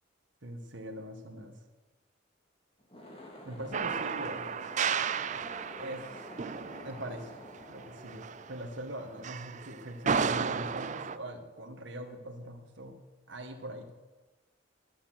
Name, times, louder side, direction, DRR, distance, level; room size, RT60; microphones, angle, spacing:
voice 1, 0.4-1.6 3.4-4.5 5.8-6.1 6.8-7.4 7.7-13.0 13.3-13.9, right 1 dB, 65° right, 4 dB, 1.8 m, -42 dB
sound 1, 2.8-9.3, left 1 dB, 30° left, 2.6 m, -49 dB
sound 2, 3.7-8.8 9.2-11.2, right 6 dB, 40° right, 0.4 m, -33 dB
18.0 x 8.7 x 6.1 m, 1.2 s
head